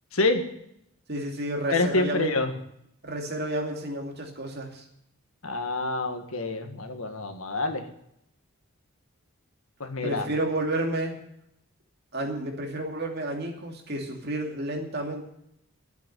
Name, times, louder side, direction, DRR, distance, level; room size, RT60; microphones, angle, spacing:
voice 1, 0.1-0.4 1.7-2.5 5.4-7.9 9.8-10.3, left 2 dB, 75° left, 6 dB, 1.8 m, -27 dB
voice 2, 1.1-2.3 3.0-4.8 10.0-11.2 12.1-15.3, right 1 dB, 45° right, 2 dB, 2.6 m, -31 dB
12.0 x 8.0 x 9.9 m, 0.75 s
head